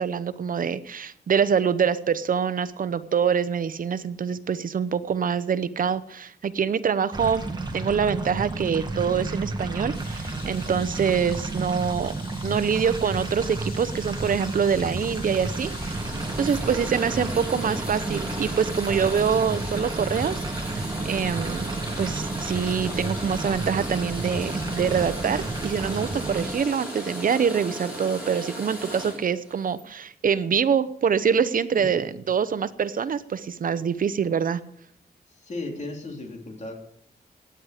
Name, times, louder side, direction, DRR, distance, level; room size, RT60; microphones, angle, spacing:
voice 1, 0.0-7.4 7.7-12.1 12.4-16.0 16.4-34.6, right 7 dB, 60° right, 14 dB, 0.8 m, -25 dB
sound 1, 7.1-26.5, right 2 dB, 25° right, 1.9 m, -32 dB
sound 2, 9.9-29.1, left 4 dB, 75° left, 5.7 m, -43 dB
sound 3, 14.3-29.8, right 1 dB, 10° right, 3.5 m, -37 dB
voice 2, 35.4-36.7, left 2 dB, 45° left, 2 dB, 3.2 m, -36 dB
17.0 x 10.0 x 5.0 m, 0.69 s
wide cardioid pair, 140°, 17 cm